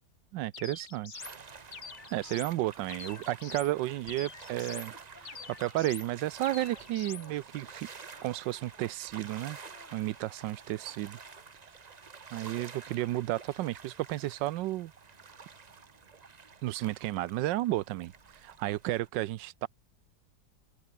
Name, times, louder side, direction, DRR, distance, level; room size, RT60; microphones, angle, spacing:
voice 1, 0.3-1.2 2.1-4.9 5.2-7.9 8.2-9.6 9.9-11.2 11.6-11.7 12.3-14.9 16.6-19.7, right 16 dB, 85° right, 1.3 m, -33 dB
sound 1, 0.5-1.4 1.7-2.5 2.9-3.7 4.1-4.9 5.2-6.1 6.4-7.3, left 6 dB, 40° left, 1.7 m, -45 dB
sound 2, 1.2-19.1, right 5 dB, 35° right, 0.7 m, -50 dB
sound 3, 1.8-3.4 3.8-5.8 6.5-7.4 8.1-9.0 9.6-10.0 10.9-11.5, left 2 dB, 25° left, 2.8 m, -59 dB
open air
omnidirectional pair, 2.0 m